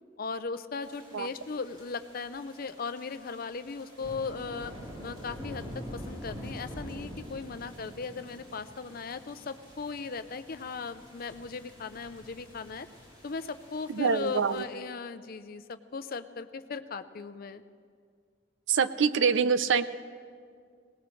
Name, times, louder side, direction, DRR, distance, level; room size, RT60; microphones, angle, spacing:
voice 1, 0.2-4.7 5.0-12.9 13.2-17.6, left 4 dB, 50° left, 12 dB, 0.6 m, -38 dB
sound 1, 0.8-14.6, equal, 25° right, 4.3 m, -46 dB
voice 2, 13.9-14.6 18.7-19.8, right 6 dB, 85° right, 14 dB, 0.6 m, -25 dB
21.5 x 18.5 x 3.2 m, 2.1 s
head